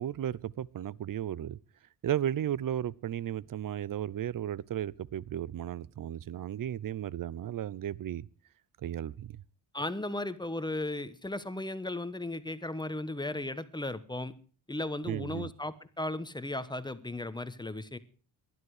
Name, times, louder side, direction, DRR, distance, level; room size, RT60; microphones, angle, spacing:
voice 1, 0.0-1.6 2.0-8.3 8.8-9.4 15.0-15.5, right 10 dB, 50° right, 0.6 m, -34 dB
voice 2, 9.7-14.3 14.7-18.0, left 2 dB, 10° left, 1.1 m, -36 dB
19.5 x 12.0 x 4.9 m
cardioid pair, 115°, 43 cm